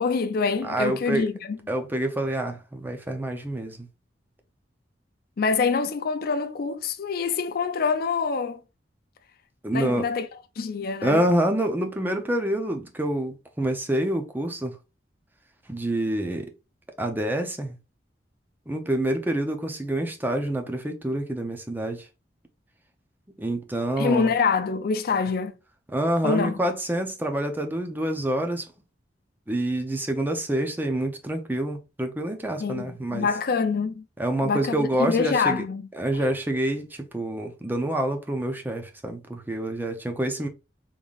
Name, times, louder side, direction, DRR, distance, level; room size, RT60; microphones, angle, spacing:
voice 1, 0.0-1.6 5.4-8.6 9.7-10.3 10.6-11.2 24.0-25.5 26.2-26.6 32.6-34.0 34.4-35.9, left 5 dB, 55° left, 0.4 m, -25 dB
voice 2, 0.6-1.3 1.7-3.9 9.6-10.1 11.0-14.7 15.7-16.5 17.0-17.8 18.7-22.1 23.4-24.3 25.9-28.7 29.5-33.3 34.2-35.6 36.0-40.5, right 1 dB, 10° right, 0.5 m, -27 dB
3.6 x 3.5 x 2.4 m
head